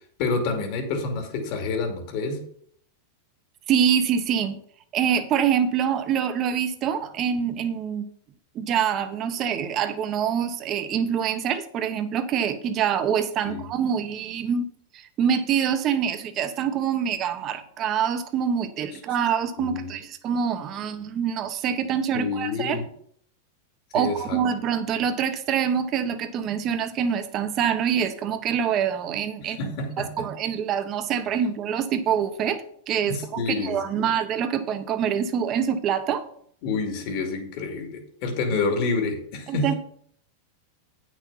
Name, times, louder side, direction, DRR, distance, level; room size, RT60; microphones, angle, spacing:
voice 1, 0.2-2.4 13.4-13.7 19.6-19.9 22.1-22.8 23.9-24.4 29.4-30.3 33.1-34.1 36.6-39.8, left 3 dB, 50° left, 3 dB, 2.5 m, -28 dB
voice 2, 3.7-4.6 4.9-8.1 8.5-14.7 14.9-22.8 23.9-29.7 30.0-36.2 39.5-39.7, right 8 dB, 35° right, 9 dB, 1.1 m, -25 dB
8.9 x 6.3 x 5.6 m, 0.63 s
supercardioid pair, 135°, 0 cm